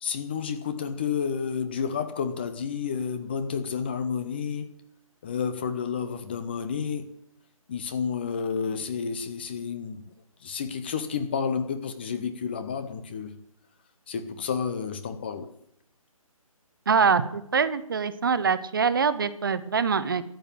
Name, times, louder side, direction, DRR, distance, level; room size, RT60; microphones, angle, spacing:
voice 1, 0.0-4.8 5.2-7.2 7.7-10.1 10.4-13.3 14.1-15.5, left 6 dB, 20° left, 0.7 m, -30 dB
voice 2, 16.9-20.2, right 5 dB, 35° right, 0.9 m, -24 dB
14.0 x 8.3 x 8.8 m
figure-of-eight pair, 145°, 18 cm